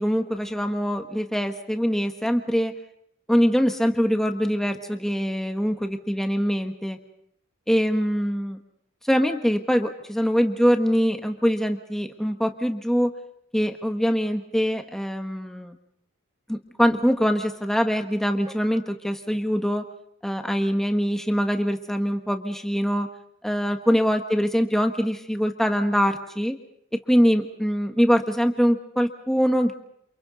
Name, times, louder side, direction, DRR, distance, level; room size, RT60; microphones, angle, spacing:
voice 1, 0.0-2.7 3.3-7.0 7.7-8.6 9.0-13.1 13.5-15.8 16.5-19.8 20.2-23.1 23.4-26.6 26.9-29.7, equal, ahead, 5 dB, 1.4 m, -23 dB
29.0 x 28.5 x 4.0 m, 0.69 s
head